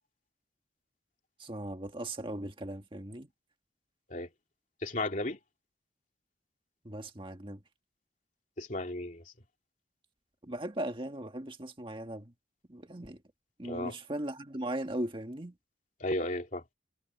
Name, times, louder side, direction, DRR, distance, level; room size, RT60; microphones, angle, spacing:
voice 1, 1.4-3.3 6.9-7.6 10.4-12.3 12.7-13.2 13.6-15.5, right 1 dB, 30° right, 1.8 m, -38 dB
voice 2, 4.8-5.4 8.6-9.2 13.6-14.0 16.0-16.6, left 1 dB, 45° left, 3.0 m, -34 dB
head